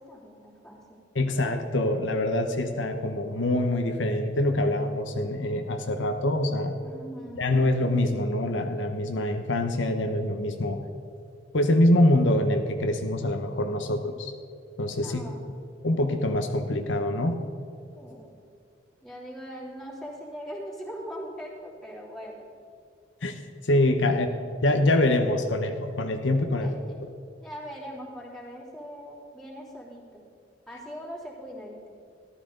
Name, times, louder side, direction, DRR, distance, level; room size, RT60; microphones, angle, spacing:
voice 1, 0.0-1.0 6.8-7.7 14.9-15.4 17.9-18.3 19.0-22.4 24.0-24.2 26.6-26.9 27.4-30.2 30.7-31.9, equal, ahead, -6 dB, 3.1 m, -41 dB
voice 2, 1.1-6.8 7.4-10.8 11.5-14.3 14.8-15.2 15.8-17.4 23.2-23.4 23.7-24.3 24.6-26.7, left 1 dB, 85° left, 5 dB, 1.0 m, -25 dB
14.0 x 12.5 x 3.9 m, 2.5 s
head